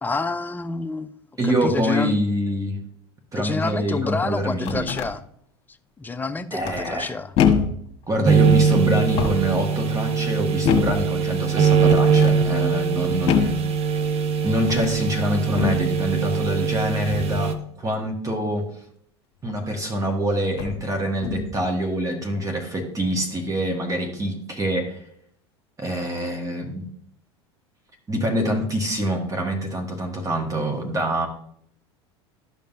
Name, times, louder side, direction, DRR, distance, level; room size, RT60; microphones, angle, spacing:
voice 1, 0.0-1.1 1.4-2.2 3.4-5.2 6.0-7.3, left 3 dB, 10° left, 10 dB, 0.5 m, -28 dB
voice 2, 1.4-2.8 3.3-4.9 6.5-7.1 8.1-14.0 14.4-18.7 19.4-25.0 25.8-26.9 28.1-31.3, equal, 25° right, 2 dB, 1.5 m, -25 dB
sound 1, 4.4-5.1 6.6-7.0 7.4-7.9 9.0-9.6 10.6-11.1 11.9-12.4 13.3-13.7 14.6-15.0 15.5-15.9 17.1-17.4 19.5-19.6 20.5-20.8 21.2-21.6, left 7 dB, 45° left, 1.4 m, -24 dB
sound 2, 8.3-17.5, right 6 dB, 45° right, 0.9 m, -21 dB
12.5 x 5.3 x 2.6 m, 0.67 s
hypercardioid pair, 80°, 14 cm